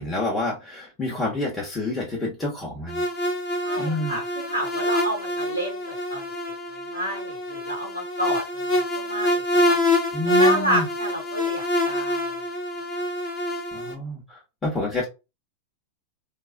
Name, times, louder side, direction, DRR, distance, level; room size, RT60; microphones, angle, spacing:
voice 1, 0.0-3.0 3.8-4.2 10.1-10.9 13.7-14.2 14.6-15.0, left 2 dB, 15° left, 1.3 m, -28 dB
sound 1, 2.9-13.9, left 1 dB, 35° left, 1.3 m, -26 dB
voice 2, 3.6-6.2 6.9-8.4 8.7-9.8 10.2-12.3, equal, 90° left, 1.6 m, -29 dB
4.5 x 2.8 x 2.3 m
figure-of-eight pair, 90°, 0 cm